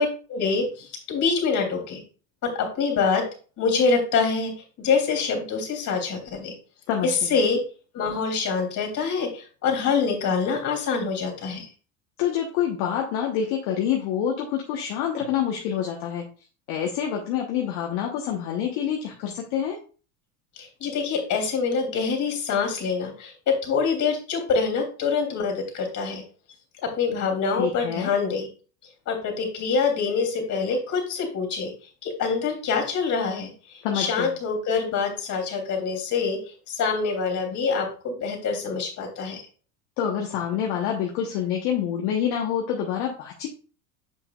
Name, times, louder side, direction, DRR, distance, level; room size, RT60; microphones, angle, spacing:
voice 1, 0.0-2.0 2.4-3.2 3.6-4.5 4.8-6.5 7.0-7.6 7.9-11.7 20.6-26.2 26.8-28.5 29.1-31.7 32.0-33.5 33.9-36.4 36.7-39.4, left 5 dB, 45° left, 2 dB, 3.3 m, -25 dB
voice 2, 12.2-16.2 16.7-19.8 27.6-28.1 33.8-34.3 40.0-43.5, left 9 dB, 65° left, 1 dB, 1.3 m, -27 dB
7.6 x 5.9 x 2.5 m, 0.38 s
hypercardioid pair, 85°, 41 cm